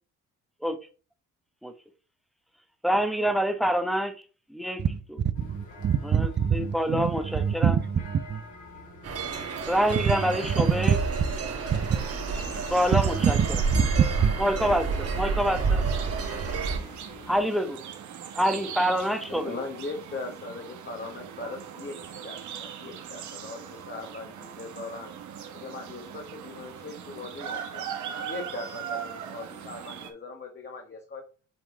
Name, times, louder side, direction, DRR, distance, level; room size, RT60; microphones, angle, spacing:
voice 1, 2.8-4.1 4.5-4.8 6.0-7.8 9.7-11.0 12.7-13.4 14.4-15.8 17.3-17.8 18.3-19.6, equal, ahead, 1.0 m, -26 dB
sound 1, 5.3-17.4, left 2 dB, 70° left, 2.8 m, -47 dB
voice 2, 5.4-8.4 9.9-11.0 11.7-12.0 12.9-14.3, right 7 dB, 35° right, 0.6 m, -25 dB
sound 2, 9.0-16.8, right 4 dB, 50° right, 1.6 m, -29 dB
sound 3, 11.9-30.1, right 8 dB, 70° right, 1.2 m, -40 dB
voice 3, 19.3-25.1 25.5-31.2, left 3 dB, 35° left, 1.4 m, -40 dB
7.6 x 3.7 x 3.5 m
cardioid pair, 90°, 30 cm